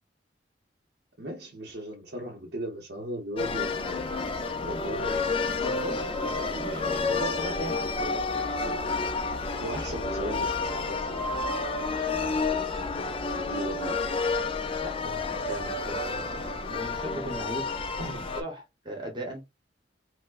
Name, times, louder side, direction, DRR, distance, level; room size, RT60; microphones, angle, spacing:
voice 1, 1.2-4.0 4.3-5.2 6.5-7.3 9.5-11.2 11.6-13.9 18.0-18.3, right 1 dB, 60° right, 0.7 m, -38 dB
sound 1, 3.4-18.4, left 3 dB, 30° left, 0.4 m, -30 dB
voice 2, 5.6-7.7 14.8-17.9 18.3-19.5, equal, 25° right, 1.0 m, -38 dB
4.4 x 2.1 x 2.4 m
head